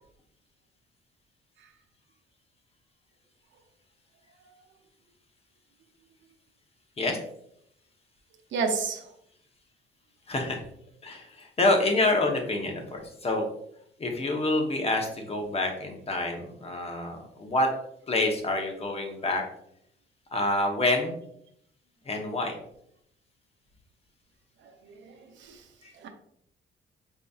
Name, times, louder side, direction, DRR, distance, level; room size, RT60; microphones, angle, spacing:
voice 1, 8.5-9.0 24.8-25.6 26.0-26.1, right 4 dB, 70° right, 5 dB, 0.6 m, -31 dB
voice 2, 10.3-10.6 11.0-13.5 14.0-17.7 18.1-19.4 20.3-21.1 22.0-22.6 25.8-25.9, left 2 dB, 30° left, 2 dB, 0.8 m, -27 dB
4.8 x 2.7 x 2.3 m, 0.72 s
cardioid pair, 90°, 20 cm